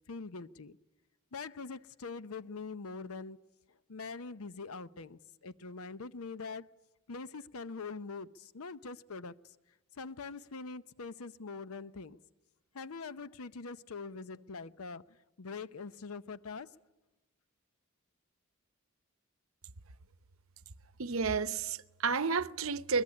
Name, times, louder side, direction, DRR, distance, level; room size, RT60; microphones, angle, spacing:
voice 1, 0.1-0.8 1.3-3.4 3.7-6.7 7.1-9.6 9.9-12.2 12.7-16.8, left 4 dB, 85° left, 0.7 m, -43 dB
voice 2, 21.0-23.0, right 5 dB, 75° right, 0.8 m, -31 dB
22.5 x 21.0 x 9.8 m
head